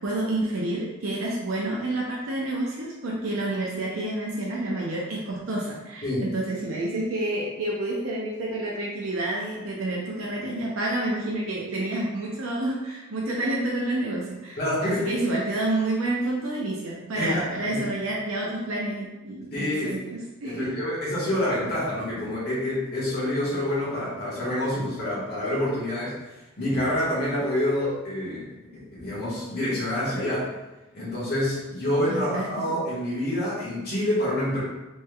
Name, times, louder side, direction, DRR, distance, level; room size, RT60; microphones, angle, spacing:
voice 1, 0.0-20.7 32.1-32.8, right 1 dB, 70° right, -4 dB, 0.5 m, -29 dB
voice 2, 14.6-15.1 17.1-17.4 17.7-17.8 19.5-19.9 20.4-26.2 26.6-28.5 28.7-30.5 30.9-34.6, left 1 dB, 45° left, -8 dB, 1.2 m, -27 dB
3.2 x 3.1 x 2.2 m, 1.1 s
head